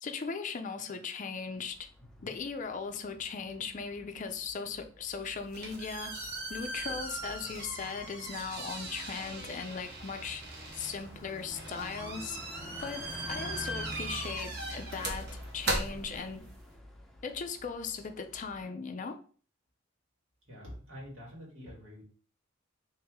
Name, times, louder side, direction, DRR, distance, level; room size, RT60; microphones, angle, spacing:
voice 1, 0.0-1.8 2.2-6.2 6.5-10.4 10.7-12.4 12.8-16.5 17.2-19.2, left 5 dB, 40° left, 0.4 m, -38 dB
Bus, 1.5-18.6, equal, 5° left, 0.7 m, -48 dB
sound 1, 5.3-16.7, right 2 dB, 55° right, 0.9 m, -39 dB
voice 2, 20.5-22.0, equal, 75° right, 1.9 m, -47 dB
3.1 x 3.0 x 3.6 m
head